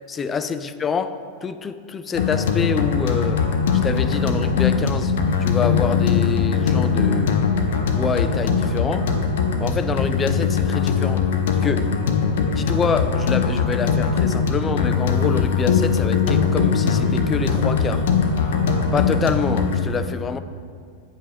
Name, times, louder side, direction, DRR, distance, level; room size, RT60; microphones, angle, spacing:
voice 1, 0.1-3.5 3.7-5.1 5.4-7.4 7.9-9.1 9.6-11.3 11.6-11.9 12.3-18.1 18.9-20.4, left 5 dB, 20° left, 0.3 m, -26 dB
sound 1, 2.1-19.8, left 6 dB, 60° left, 0.7 m, -21 dB
8.8 x 5.5 x 4.9 m
figure-of-eight pair, 90°, 0 cm